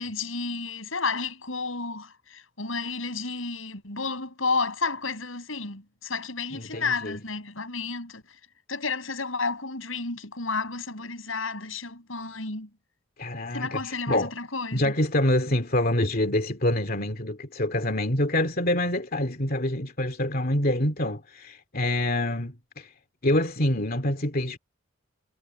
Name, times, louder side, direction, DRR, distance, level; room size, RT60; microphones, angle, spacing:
voice 1, 0.0-8.2 8.7-12.7 13.5-14.9 16.9-17.0, left 4 dB, 90° left, 6.6 m, -31 dB
voice 2, 6.5-7.2 13.2-14.3 14.7-22.9 23.2-24.6, left 1 dB, 50° left, 2.5 m, -26 dB
head